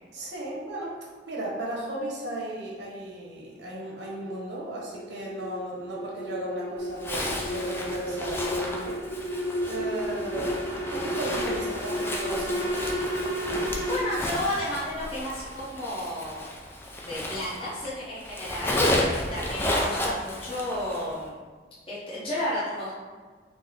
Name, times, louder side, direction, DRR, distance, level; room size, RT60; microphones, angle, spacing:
voice 1, 0.1-0.9 1.3-9.0 9.6-12.9, right 1 dB, 75° right, -4 dB, 1.2 m, -35 dB
sound 1, 3.5-14.0, equal, 80° left, 1.4 m, -33 dB
Zipper (clothing), 7.0-17.9 18.2-21.1, left 1 dB, 15° left, 0.4 m, -32 dB
voice 2, 13.8-16.6 17.0-21.4 21.9-22.9, left 1 dB, 30° left, -9 dB, 1.1 m, -32 dB
4.2 x 2.8 x 3.7 m, 1.4 s
head